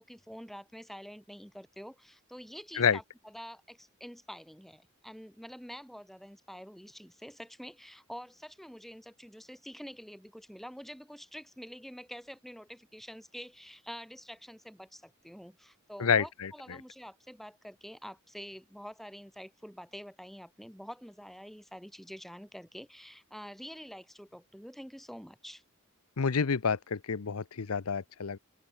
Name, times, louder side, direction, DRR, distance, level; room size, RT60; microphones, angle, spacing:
voice 1, 0.0-25.6, equal, ahead, 5.3 m, -47 dB
voice 2, 16.0-16.5 26.2-28.4, left 6 dB, 90° left, 0.7 m, -28 dB
open air
head